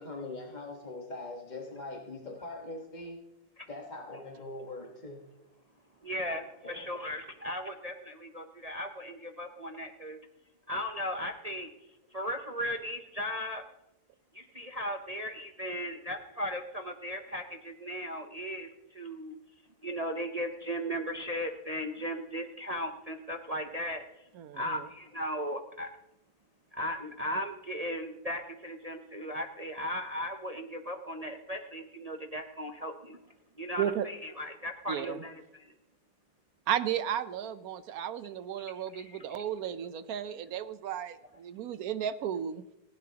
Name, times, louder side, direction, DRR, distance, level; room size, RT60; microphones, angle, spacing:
voice 1, 0.0-3.2 3.7-5.2 6.6-6.9, left 2 dB, 25° left, 0 dB, 1.3 m, -42 dB
voice 2, 6.0-10.2 10.7-11.7 12.1-13.6 14.3-19.3 19.8-24.0 24.5-25.9 26.7-33.2 33.6-35.7 38.6-39.3, equal, 50° right, 4 dB, 0.4 m, -37 dB
voice 3, 24.4-24.9 33.8-34.1 34.9-35.2 36.7-42.6, right 9 dB, 65° right, 13 dB, 1.1 m, -34 dB
18.5 x 16.0 x 2.9 m, 0.90 s
omnidirectional pair, 1.9 m